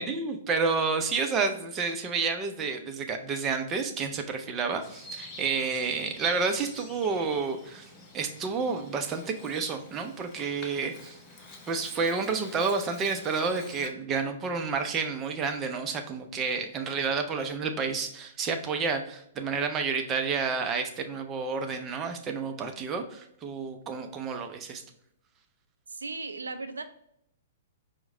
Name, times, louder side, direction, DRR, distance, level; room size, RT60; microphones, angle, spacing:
voice 1, 0.0-7.9 8.1-11.2 11.7-24.8, right 4 dB, 25° right, 5 dB, 0.5 m, -30 dB
Bird vocalization bird call bird song, 4.8-13.9, left 2 dB, 20° left, 0.7 m, -47 dB
voice 2, 25.9-26.8, right 3 dB, 75° right, 8 dB, 0.4 m, -36 dB
4.6 x 2.1 x 3.7 m, 0.73 s
figure-of-eight pair, 110°, 0 cm